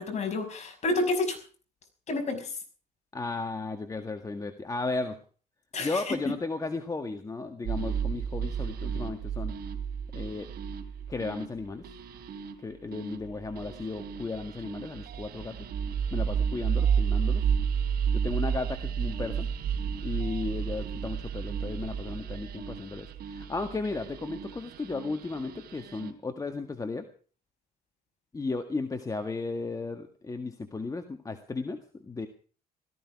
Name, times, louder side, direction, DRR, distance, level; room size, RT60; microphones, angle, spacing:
voice 1, 0.0-1.4 2.1-2.5 5.7-6.2, left 2 dB, 40° left, 4 dB, 5.8 m, -29 dB
voice 2, 3.1-5.2 5.8-9.6 10.1-10.5 11.1-11.8 12.6-15.6 16.1-17.5 18.1-19.5 20.0-27.1 28.3-32.3, left 3 dB, 20° left, 6 dB, 1.7 m, -35 dB
sound 1, 7.7-26.1, right 7 dB, 65° right, 3.4 m, -32 dB
17.5 x 14.5 x 4.8 m, 0.41 s
cardioid pair, 110°, 17 cm